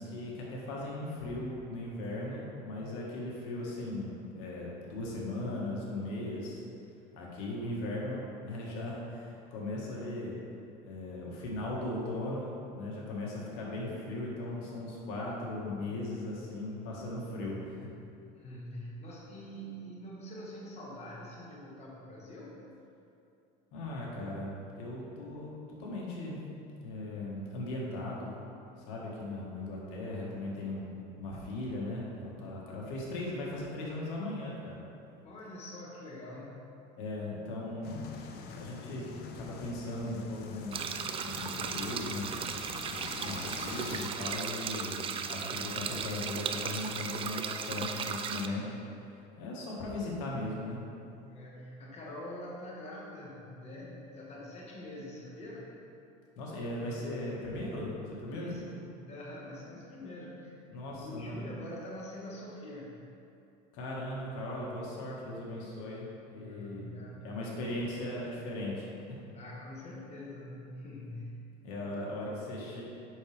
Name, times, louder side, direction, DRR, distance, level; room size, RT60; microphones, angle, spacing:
voice 1, 0.0-6.6 7.1-10.4 10.8-17.9 23.7-25.5 25.8-26.4 26.8-28.3 28.8-34.8 37.0-38.0 38.5-41.0 41.2-42.5 42.9-48.7 49.4-50.8 56.4-57.9 58.2-58.5 60.7-61.4 63.7-68.9 71.6-72.8, left 2 dB, 75° left, -4 dB, 1.8 m, -38 dB
voice 2, 18.4-22.6 35.2-36.7 51.2-55.8 58.3-63.0 66.4-67.4 69.3-71.5, left 1 dB, 30° left, -4 dB, 1.4 m, -45 dB
sound 1, 37.8-44.1, left 5 dB, 50° left, 0.8 m, -45 dB
sound 2, 40.7-48.5, right 6 dB, 25° right, 0.4 m, -36 dB
8.1 x 6.0 x 3.4 m, 2.7 s
supercardioid pair, 125°, 21 cm